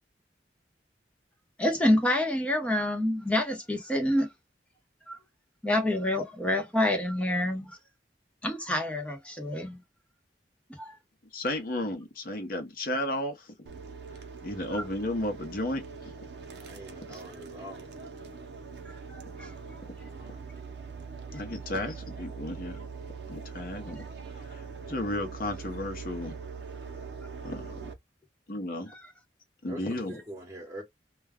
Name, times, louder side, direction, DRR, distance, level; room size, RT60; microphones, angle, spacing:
voice 1, 1.6-4.3 5.1-5.2 5.6-7.8 8.4-9.8 10.8-10.9 14.7-14.8 18.9-19.5, left 1 dB, 5° left, 0.8 m, -27 dB
voice 2, 11.3-13.7 14.4-15.8 21.3-22.8 23.3-24.0 24.4-26.3 27.4-27.9 28.5-28.9 29.6-30.2, left 1 dB, 50° left, 0.7 m, -33 dB
sound 1, 13.7-27.9, right 5 dB, 75° right, 0.6 m, -42 dB
voice 3, 16.5-17.8 20.0-20.4 29.7-30.8, equal, 15° right, 1.0 m, -44 dB
2.3 x 2.2 x 3.4 m
head